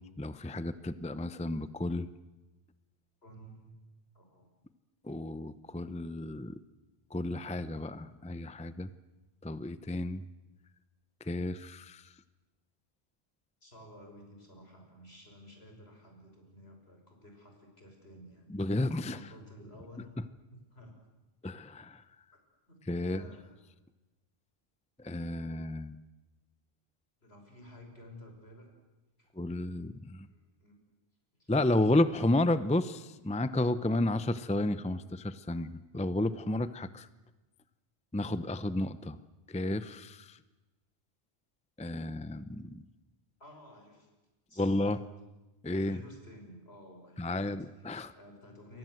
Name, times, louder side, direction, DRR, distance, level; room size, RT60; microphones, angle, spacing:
voice 1, 0.2-2.1 5.0-6.6 7.1-8.9 9.4-10.2 11.2-12.0 18.5-19.2 21.4-22.0 22.9-23.2 25.0-26.0 29.4-30.3 31.5-37.1 38.1-39.2 39.5-40.4 41.8-42.8 44.6-45.0 45.6-46.0 47.2-48.1, left 1 dB, 10° left, 14 dB, 0.6 m, -32 dB
voice 2, 3.2-3.7 4.1-4.5 13.6-20.2 20.5-20.9 22.7-23.5 27.2-28.7 29.2-29.3 29.7-29.9 30.2-30.7 31.3-31.5 43.4-44.1 44.5-44.8 45.8-47.5 47.8-48.8, left 1 dB, 70° left, 3 dB, 6.2 m, -53 dB
28.0 x 22.5 x 7.9 m, 1.1 s
omnidirectional pair, 1.1 m